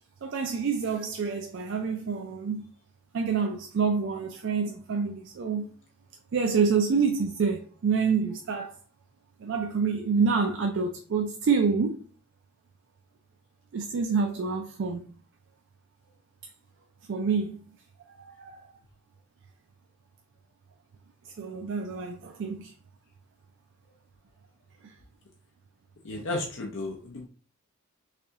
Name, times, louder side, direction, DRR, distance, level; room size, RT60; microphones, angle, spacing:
voice 1, 0.2-2.7 3.1-5.7 6.3-8.8 9.4-12.0 13.7-15.0 17.1-17.6 18.4-18.6 21.4-22.7 24.8-24.9, right 5 dB, 55° right, 0.3 m, -27 dB
voice 2, 26.0-27.3, left 2 dB, 55° left, 0.6 m, -33 dB
3.4 x 3.3 x 2.8 m
head